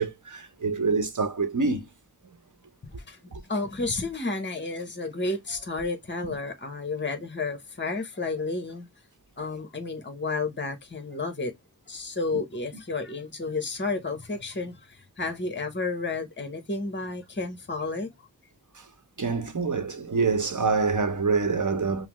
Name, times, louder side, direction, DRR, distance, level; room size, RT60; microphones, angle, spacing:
voice 1, 0.0-1.8 19.2-22.1, right 4 dB, 50° right, 0.9 m, -26 dB
voice 2, 2.8-3.2 3.5-8.9 9.4-11.5 11.9-18.1, left 3 dB, 30° left, 0.9 m, -31 dB
5.5 x 2.0 x 2.9 m
wide cardioid pair, 50°, 38 cm